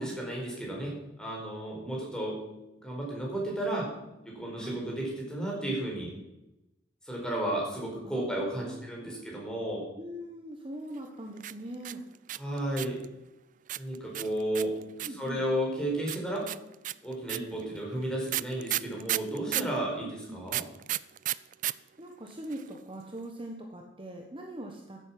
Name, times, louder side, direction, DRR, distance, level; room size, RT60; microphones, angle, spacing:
voice 1, 0.0-2.4 2.8-3.9 4.2-6.1 7.0-9.9 12.4-13.0 13.8-16.5 17.0-20.7, right 1 dB, 5° left, -3 dB, 4.6 m, -33 dB
voice 2, 8.0-9.2 10.0-12.0 15.0-15.4 20.0-20.4 22.0-25.0, right 1 dB, 30° right, 2 dB, 1.3 m, -42 dB
sound 1, 11.4-13.0 13.7-15.3 16.1-19.8 20.5-21.7 22.0-22.1 22.3-22.8, right 14 dB, 45° right, 0.4 m, -32 dB
14.0 x 8.4 x 6.0 m, 0.94 s
head